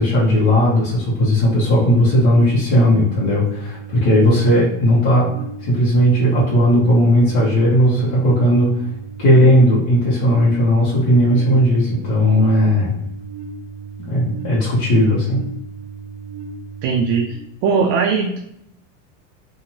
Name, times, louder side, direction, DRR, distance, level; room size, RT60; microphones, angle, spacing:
voice 1, 0.0-5.3 5.6-8.8 9.2-12.9 14.1-15.4, equal, 50° left, -8 dB, 1.2 m, -16 dB
sound 1, 1.5-17.3, right 4 dB, 5° left, 1.3 m, -35 dB
voice 2, 16.8-17.4 17.6-18.4, right 5 dB, 45° right, 2 dB, 0.4 m, -19 dB
2.8 x 2.6 x 2.8 m, 0.76 s
supercardioid pair, 125°, 39 cm